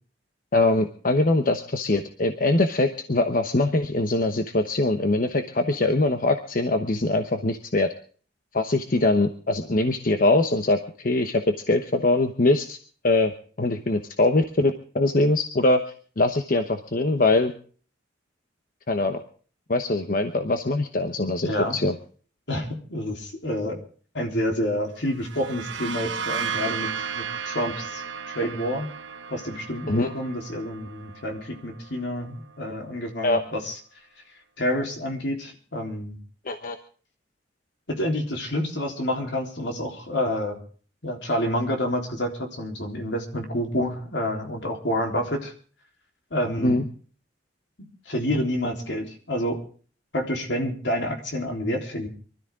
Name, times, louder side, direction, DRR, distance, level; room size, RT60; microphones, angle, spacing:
voice 1, 0.5-7.9 8.5-12.8 13.0-15.8 16.2-17.5 18.9-19.2 19.7-22.0 29.9-30.1 33.2-33.4 36.5-36.8 46.6-46.8, left 2 dB, 50° left, 8 dB, 1.0 m, -22 dB
voice 2, 21.4-21.8 22.5-23.8 24.1-28.9 29.3-33.8 34.6-36.2 37.9-40.6 41.0-45.5 46.3-46.8 48.1-49.6 50.1-52.1, left 1 dB, 70° left, 2 dB, 3.7 m, -28 dB
sound 1, 25.1-32.7, right 6 dB, 75° right, 1.1 m, -34 dB
24.5 x 13.0 x 3.7 m, 0.43 s
head